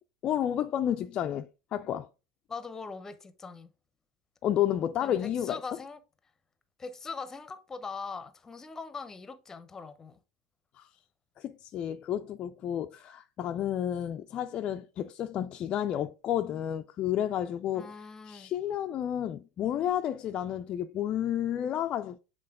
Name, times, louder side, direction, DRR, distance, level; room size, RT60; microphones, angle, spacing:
voice 1, 0.2-2.1 4.4-5.6 10.8-10.9 11.4-18.0 18.3-22.2, left 10 dB, 40° left, 0.4 m, -31 dB
voice 2, 2.5-3.7 5.0-6.0 6.8-10.2 17.7-18.5, left 4 dB, 20° left, 0.8 m, -41 dB
7.5 x 3.7 x 3.6 m
hypercardioid pair, 80°, 2 cm